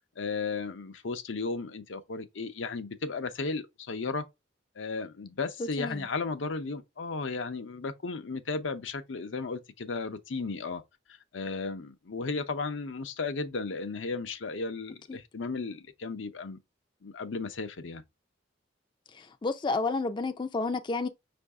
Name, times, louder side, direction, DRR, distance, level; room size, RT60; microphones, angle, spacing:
voice 1, 0.2-4.3 4.8-10.8 11.1-16.6 17.0-18.0, left 4 dB, 85° left, 0.6 m, -35 dB
voice 2, 5.6-6.0 15.1-15.2 19.1-21.1, left 3 dB, 25° left, 0.4 m, -31 dB
5.4 x 2.6 x 3.4 m
head